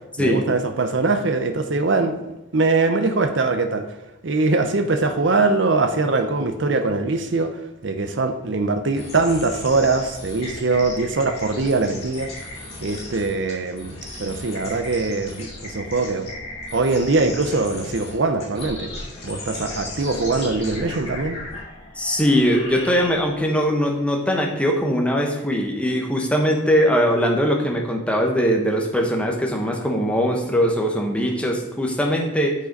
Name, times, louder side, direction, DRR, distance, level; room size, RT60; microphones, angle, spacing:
voice 1, 0.2-2.2 2.5-3.9 4.2-7.6 7.8-12.3 12.8-16.3 16.7-18.9 19.2-21.4, right 3 dB, 60° right, 7 dB, 0.6 m, -22 dB
sound 1, 8.9-23.5, left 2 dB, 30° left, 2.4 m, -36 dB
voice 2, 22.0-32.5, equal, 5° left, 0 dB, 0.9 m, -21 dB
6.6 x 5.2 x 5.3 m, 0.98 s
head